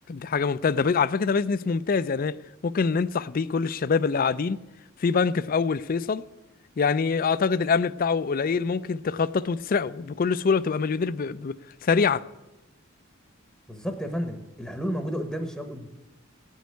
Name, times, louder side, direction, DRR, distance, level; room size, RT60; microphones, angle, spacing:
voice 1, 0.1-2.3 2.6-4.6 5.0-6.2 6.8-12.2, left 5 dB, 45° left, 0.4 m, -25 dB
voice 2, 13.7-15.9, equal, ahead, 0.9 m, -32 dB
16.5 x 6.4 x 9.3 m
head